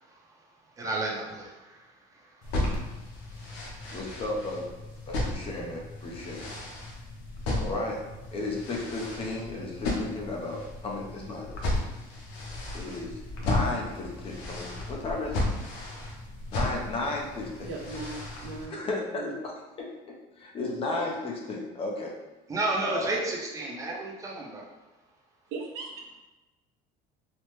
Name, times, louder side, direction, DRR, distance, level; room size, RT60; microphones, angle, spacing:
voice 1, 0.8-1.8 22.5-24.6, right 2 dB, 20° right, -2 dB, 0.6 m, -31 dB
sound 1, 2.4-18.7, left 2 dB, 70° left, 0.8 m, -34 dB
voice 2, 3.9-4.7 5.1-6.5 7.5-8.0 8.3-11.8 12.7-15.4 16.5-17.9 18.7-19.9 20.4-22.1 22.8-23.3, left 2 dB, 30° left, -1 dB, 0.6 m, -34 dB
voice 3, 17.6-18.7 19.2-19.3 25.5-25.9, right 3 dB, 75° right, 1 dB, 0.6 m, -38 dB
3.3 x 2.0 x 3.1 m, 1.1 s
cardioid pair, 130°, 18 cm